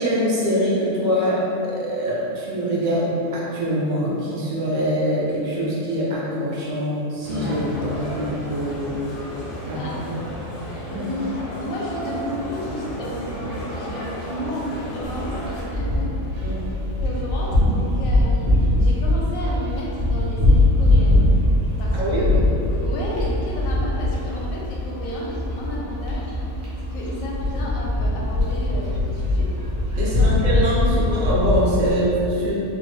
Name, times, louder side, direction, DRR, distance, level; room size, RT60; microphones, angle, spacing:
voice 1, 0.0-9.0 9.7-10.2 10.9-11.1 16.4-16.7 21.9-22.3 30.0-32.6, equal, 60° right, -5 dB, 0.5 m, -24 dB
sound 1, 7.2-15.6, equal, 50° left, 0.7 m, -33 dB
voice 2, 9.7-10.0 10.8-16.7 17.0-18.5 18.8-21.3 21.8-22.3 22.7-26.3 26.8-29.5 30.0-30.3, equal, 75° left, -4 dB, 1.0 m, -32 dB
sound 2, 15.0-31.9, left 1 dB, 90° right, 1.3 m, -21 dB
3.5 x 2.0 x 3.2 m, 2.8 s
omnidirectional pair, 1.4 m